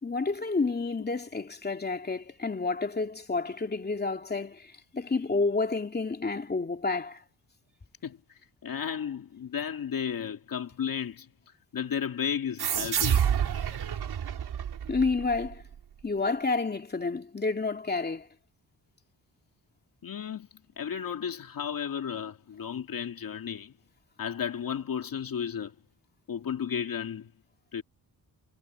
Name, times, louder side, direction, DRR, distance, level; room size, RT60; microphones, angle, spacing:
voice 1, 0.0-7.2 14.9-15.6 16.0-18.3, left 3 dB, 25° left, 2.7 m, -30 dB
voice 2, 8.6-11.3 11.7-13.2 20.0-20.5 20.8-23.7 24.2-25.7 26.3-27.3 27.7-27.8, left 7 dB, 60° left, 2.2 m, -33 dB
sound 1, 12.6-15.8, right 8 dB, 75° right, 4.9 m, -29 dB
cardioid pair, 100°, 39 cm